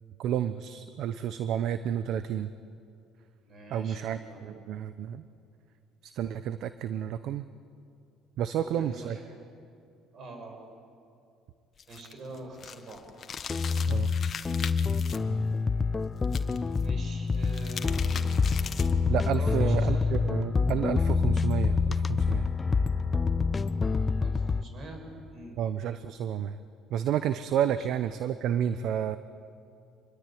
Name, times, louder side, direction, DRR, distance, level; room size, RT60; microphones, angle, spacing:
voice 1, 0.2-2.5 3.7-5.2 6.0-7.4 8.4-9.2 13.9-14.1 19.1-22.5 25.6-26.6 26.9-29.2, right 9 dB, 65° right, 12 dB, 0.8 m, -30 dB
voice 2, 3.4-4.5 8.5-9.4 10.1-10.6 11.9-13.0 16.8-18.1 19.3-20.1 24.2-25.0 25.3-25.6, right 2 dB, 50° right, 3 dB, 7.1 m, -44 dB
sound 1, 11.8-15.2 16.2-16.8 17.3-19.0, left 7 dB, 45° left, 1.5 m, -40 dB
sound 2, 13.5-24.6, left 4 dB, 25° left, 0.8 m, -27 dB
25.5 x 21.5 x 9.3 m, 2.5 s
supercardioid pair, 95°, 0 cm